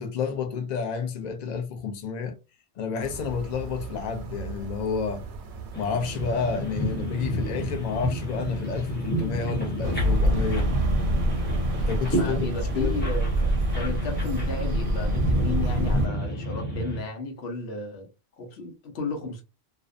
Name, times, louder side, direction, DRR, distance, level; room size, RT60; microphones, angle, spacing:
voice 1, 0.0-2.3 2.8-5.2 5.8-10.7 11.9-12.5 12.7-13.1, left 6 dB, 50° left, 0.6 m, -30 dB
sound 1, 3.0-12.3, right 4 dB, 90° right, 0.9 m, -39 dB
sound 2, 5.7-17.0, equal, 10° left, 0.8 m, -31 dB
sound 3, 9.8-16.1, equal, 60° right, 0.7 m, -25 dB
voice 2, 12.1-18.1 18.4-19.4, left 2 dB, 70° left, 1.0 m, -34 dB
2.6 x 2.1 x 2.4 m
omnidirectional pair, 1.1 m